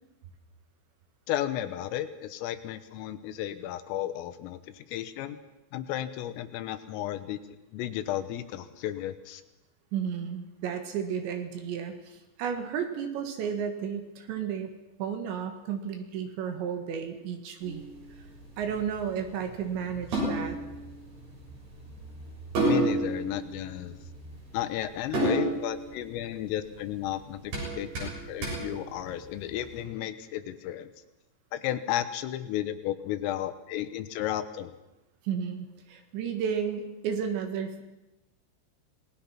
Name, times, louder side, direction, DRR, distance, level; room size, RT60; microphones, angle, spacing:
voice 1, 1.3-5.4 5.7-7.4 7.7-9.4 22.6-24.0 24.5-30.9 31.5-34.7, left 12 dB, 85° left, 10 dB, 3.7 m, -33 dB
voice 2, 9.9-14.7 15.0-17.9 18.6-20.6 35.2-37.8, right 7 dB, 65° right, 6 dB, 3.7 m, -33 dB
sound 1, 17.6-29.7, right 2 dB, 50° right, 8.7 m, -33 dB
26.5 x 19.5 x 5.8 m, 0.95 s
omnidirectional pair, 5.9 m